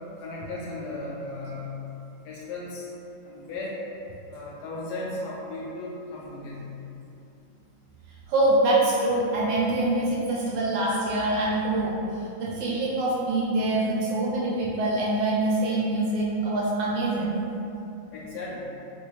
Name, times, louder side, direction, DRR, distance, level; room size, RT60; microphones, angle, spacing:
voice 1, 0.2-1.7 2.2-2.9 3.2-3.7 4.3-6.7 18.1-18.7, left 2 dB, 75° left, -6 dB, 1.0 m, -36 dB
voice 2, 8.3-12.0 12.4-17.3, right 2 dB, 75° right, -5 dB, 1.1 m, -24 dB
3.2 x 2.5 x 3.0 m, 2.8 s
omnidirectional pair, 2.1 m